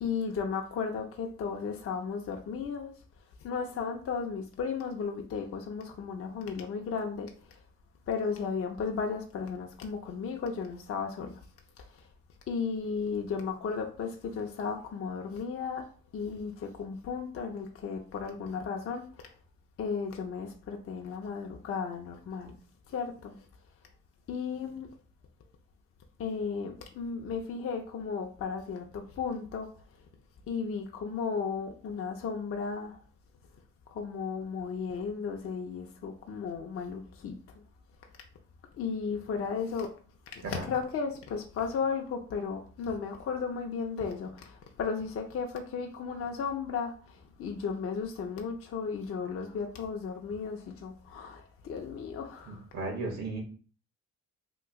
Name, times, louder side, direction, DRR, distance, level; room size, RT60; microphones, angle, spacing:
voice 1, 0.0-2.9 3.4-7.6 8.1-11.4 11.8-11.9 12.5-15.9 16.1-19.3 19.8-22.6 22.9-23.4 24.3-24.9 26.2-29.7 30.5-33.0 33.9-37.4 38.8-39.9 40.3-52.6, left 5 dB, 50° left, 0.6 m, -35 dB
voice 2, 52.5-53.4, right 2 dB, 60° right, 1.1 m, -35 dB
2.9 x 2.4 x 3.5 m
cardioid pair, 90°, 30 cm